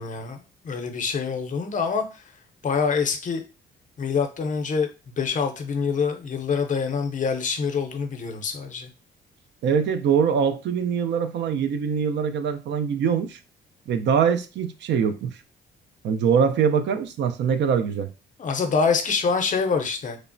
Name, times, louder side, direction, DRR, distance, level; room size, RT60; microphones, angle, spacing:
voice 1, 0.0-2.2 2.6-3.4 4.0-8.9 18.4-20.2, left 5 dB, 40° left, 0.6 m, -26 dB
voice 2, 9.6-13.4 13.9-15.4 16.0-18.1, right 7 dB, 65° right, 0.4 m, -23 dB
3.1 x 2.0 x 2.5 m
cardioid pair, 90°, 20 cm